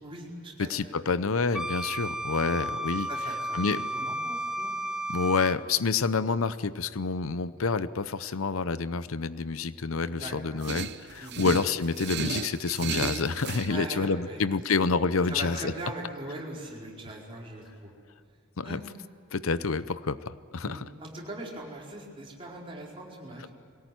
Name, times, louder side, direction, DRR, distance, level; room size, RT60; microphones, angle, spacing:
voice 1, 0.0-0.9 2.4-2.7 3.1-4.7 10.1-10.3 11.2-11.4 13.6-14.4 15.3-17.9 18.6-18.9 20.6-23.5, right 1 dB, 25° right, -3 dB, 4.7 m, -41 dB
voice 2, 0.6-3.1 3.5-3.8 5.1-15.7 18.6-18.8 19.3-20.8, left 4 dB, 80° left, 14 dB, 0.7 m, -28 dB
Wind instrument woodwind instrument, 1.5-5.6, right 1 dB, 5° right, 0.6 m, -33 dB
sound 1, 10.6-13.7, right 6 dB, 55° right, 0.8 m, -34 dB
22.5 x 18.0 x 9.4 m, 2.3 s
head